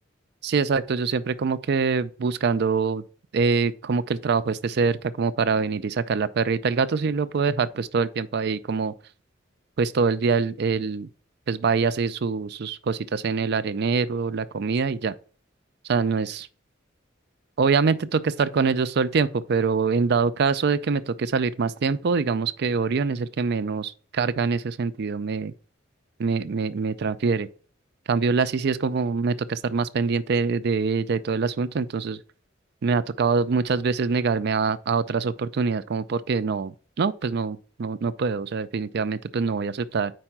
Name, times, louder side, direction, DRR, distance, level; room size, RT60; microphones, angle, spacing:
voice 1, 0.4-3.0 3.3-8.9 9.8-11.1 11.5-15.1 15.8-16.5 17.6-25.5 26.2-27.5 28.1-32.2 32.8-40.1, right 5 dB, 55° right, 0.4 m, -24 dB
4.7 x 4.4 x 5.9 m
head